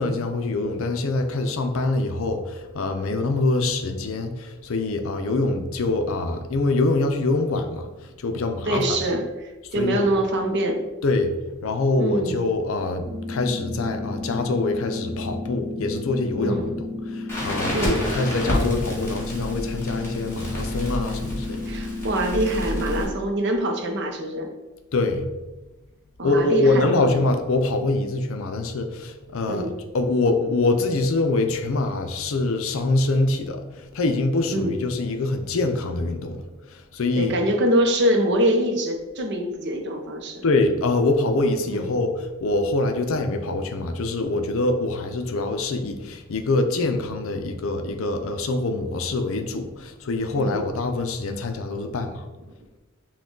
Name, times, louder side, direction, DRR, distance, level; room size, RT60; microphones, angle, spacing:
voice 1, 0.0-8.8 9.8-10.1 11.0-11.3 11.6-16.8 17.1-21.6 24.9-25.3 26.2-36.4 36.7-37.3 40.4-52.2, left 2 dB, 65° left, 5 dB, 0.5 m, -24 dB
voice 2, 8.7-10.8 12.0-12.4 16.4-16.7 17.7-18.0 21.7-24.5 26.2-27.1 29.5-29.7 34.5-34.8 37.1-40.4 41.7-41.9 50.3-50.6, right 1 dB, 50° right, 4 dB, 0.6 m, -24 dB
sound 1, 13.0-23.0, left 2 dB, 15° right, 1.0 m, -33 dB
Crackle, 17.3-23.1, equal, 10° left, 1.2 m, -29 dB
6.0 x 2.3 x 3.7 m, 1.1 s
head